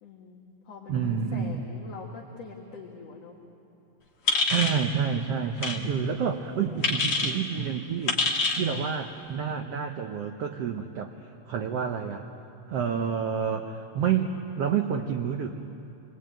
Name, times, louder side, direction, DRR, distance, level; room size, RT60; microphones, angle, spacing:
voice 1, 0.0-3.4, left 4 dB, 50° left, -1 dB, 2.6 m, -44 dB
voice 2, 0.9-1.7 4.4-8.2 8.6-11.1 11.5-12.2 12.7-15.5, right 7 dB, 75° right, 4 dB, 1.4 m, -29 dB
sound 1, 4.3-4.8 5.6-5.8 6.8-7.3 8.1-8.6, left 3 dB, 35° left, 2.2 m, -25 dB
28.0 x 21.5 x 9.0 m, 2.9 s
omnidirectional pair, 4.1 m